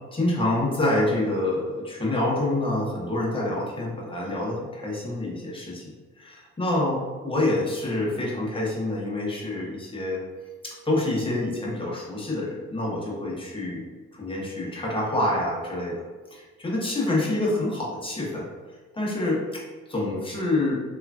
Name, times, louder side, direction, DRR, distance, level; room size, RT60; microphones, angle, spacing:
voice 1, 0.1-5.8 6.2-10.2 10.6-13.8 14.1-16.0 16.3-18.5 18.9-19.6 19.9-20.8, left 2 dB, 15° left, -4 dB, 0.8 m, -27 dB
3.0 x 2.4 x 2.2 m, 1.4 s
cardioid pair, 90°, 30 cm